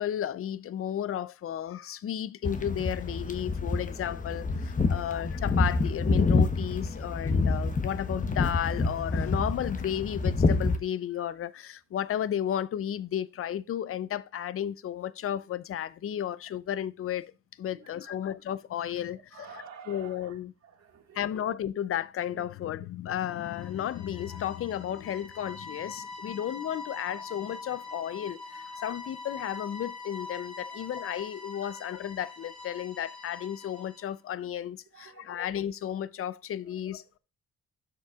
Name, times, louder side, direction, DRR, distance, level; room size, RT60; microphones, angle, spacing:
voice 1, 0.0-17.3 17.6-20.5 21.1-37.2, left 10 dB, 45° left, 0.5 m, -33 dB
sound 1, 2.4-10.8, left 3 dB, 25° left, 1.0 m, -27 dB
voice 2, 17.7-18.1 19.3-20.3 20.6-21.2 22.3-22.4 31.6-31.8 34.9-35.4, right 7 dB, 60° right, 1.9 m, -50 dB
sound 2, 23.3-34.1, left 3 dB, ahead, 2.8 m, -43 dB
12.0 x 6.7 x 2.4 m
cardioid pair, 90°, 30 cm